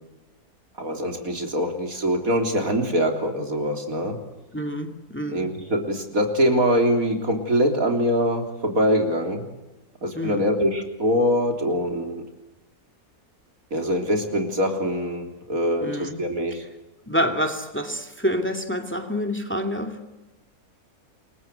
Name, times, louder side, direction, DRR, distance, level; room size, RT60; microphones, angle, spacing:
voice 1, 0.8-4.2 5.3-9.4 10.0-12.2 13.7-16.6, equal, 65° right, 4 dB, 3.9 m, -23 dB
voice 2, 4.5-5.5 10.1-10.5 15.8-16.2 16.6-16.7 17.1-20.0, equal, 5° left, 5 dB, 2.5 m, -27 dB
28.5 x 22.5 x 8.0 m, 1.0 s
omnidirectional pair, 1.6 m